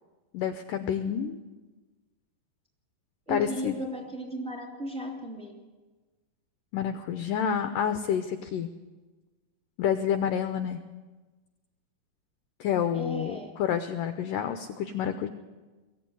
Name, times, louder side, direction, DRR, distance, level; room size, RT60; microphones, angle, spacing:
voice 1, 0.3-1.4 3.3-3.8 6.7-8.7 9.8-10.8 12.6-15.3, left 8 dB, 75° left, 9 dB, 2.1 m, -29 dB
voice 2, 3.3-5.6 12.9-13.5, equal, 15° right, 1 dB, 2.8 m, -36 dB
22.5 x 15.5 x 9.5 m, 1.3 s
omnidirectional pair, 4.8 m